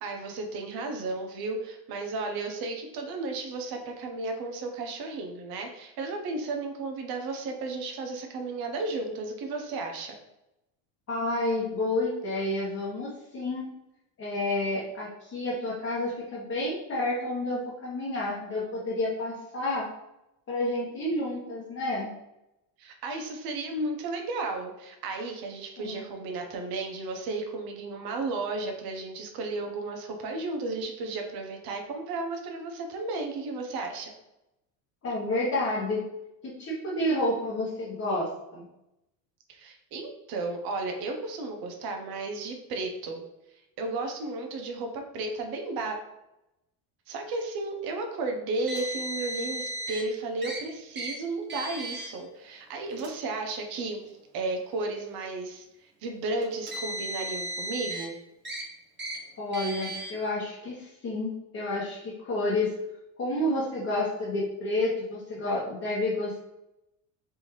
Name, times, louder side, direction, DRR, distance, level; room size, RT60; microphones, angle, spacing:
voice 1, 0.0-10.1 22.8-34.1 39.5-43.2 43.8-46.0 47.1-54.0 54.3-55.6 56.0-58.1, right 3 dB, 55° right, 3 dB, 0.8 m, -33 dB
voice 2, 11.1-13.7 14.2-19.9 20.5-22.1 25.8-26.0 35.0-36.0 36.4-38.6 59.4-62.7 63.2-66.4, left 1 dB, 30° left, -7 dB, 1.1 m, -30 dB
Car, 48.7-50.0 50.4-50.6 50.9-51.1 51.5-52.1 52.9-53.1 54.0-54.1 56.4-58.1 58.4-58.6 59.0-59.2 59.5-60.1, right 1 dB, 25° right, 1.0 m, -35 dB
3.5 x 2.7 x 3.1 m, 0.89 s
supercardioid pair, 100°, 44 cm